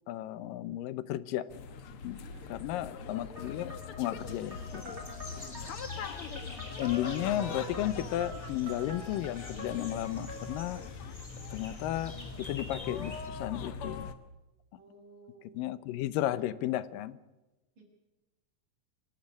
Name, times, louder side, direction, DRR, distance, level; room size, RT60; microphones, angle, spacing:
voice 1, 0.1-1.5 2.0-2.2 2.5-3.7 4.0-5.0 6.8-10.8 11.5-14.1 15.5-17.2, left 13 dB, 90° left, 16 dB, 2.5 m, -34 dB
sound 1, 1.5-14.1, left 6 dB, 60° left, 1.5 m, -42 dB
voice 2, 2.1-2.7 5.2-5.6 14.8-15.6 17.8-17.9, right 2 dB, 80° right, -1 dB, 7.0 m, -56 dB
sound 2, 3.4-10.7, equal, 20° right, 5.3 m, -47 dB
sound 3, 4.2-13.3, left 1 dB, 10° left, 2.8 m, -47 dB
26.5 x 12.0 x 9.7 m, 1.0 s
omnidirectional pair, 3.8 m